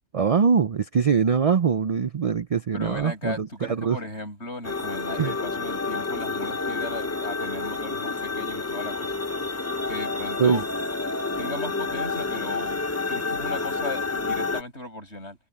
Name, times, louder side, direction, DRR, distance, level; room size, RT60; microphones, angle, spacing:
voice 1, 0.1-4.0 5.2-5.3 10.4-10.6, right 6 dB, 55° right, 0.4 m, -22 dB
voice 2, 2.7-9.2 9.9-10.6 11.4-12.8 13.1-15.4, left 2 dB, 60° left, 8.4 m, -37 dB
sound 1, 4.6-14.6, left 3 dB, 20° left, 0.4 m, -29 dB
omnidirectional pair, 1.3 m